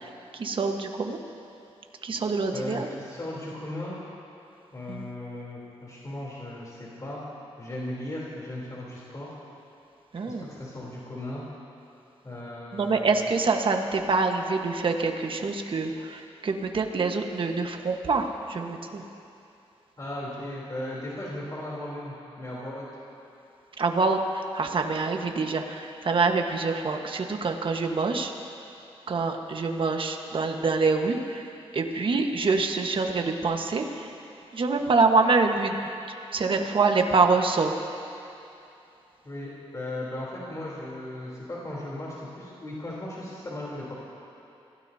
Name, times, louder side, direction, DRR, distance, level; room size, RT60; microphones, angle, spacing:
voice 1, 0.0-1.2 2.0-2.9 4.9-5.1 10.1-10.4 12.7-19.0 23.8-28.3 29.1-31.4 31.7-34.1 34.5-35.8 36.3-37.7, right 4 dB, 55° right, 4 dB, 1.4 m, -25 dB
voice 2, 2.5-4.0 4.7-7.2 7.6-9.4 10.3-11.4 12.2-13.1 20.0-22.9 39.2-44.0, left 1 dB, 35° left, -6 dB, 3.5 m, -37 dB
25.0 x 16.5 x 2.8 m, 2.8 s
cardioid pair, 75°, 10 cm